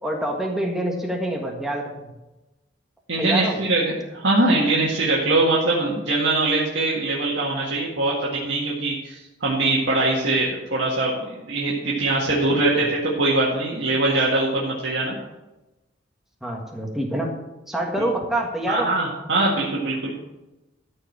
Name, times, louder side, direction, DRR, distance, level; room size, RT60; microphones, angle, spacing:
voice 1, 0.0-2.1 3.2-3.6 12.5-12.7 16.4-17.3 17.7-18.9, right 1 dB, ahead, 0 dB, 1.6 m, -26 dB
voice 2, 3.1-15.2 18.7-20.1, right 2 dB, 75° right, -5 dB, 1.8 m, -22 dB
13.0 x 4.8 x 7.3 m, 1.0 s
head